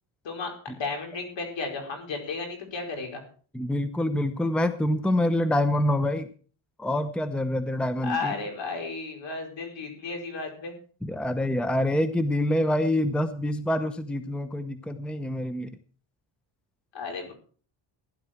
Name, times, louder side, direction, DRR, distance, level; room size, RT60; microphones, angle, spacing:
voice 1, 0.2-3.2 8.0-10.7 16.9-17.3, left 4 dB, 65° left, 3 dB, 5.1 m, -33 dB
voice 2, 3.5-6.3 6.8-8.3 11.0-15.7, left 1 dB, ahead, 11 dB, 0.8 m, -26 dB
16.0 x 11.5 x 4.5 m, 0.42 s
cardioid pair, 120°, 48 cm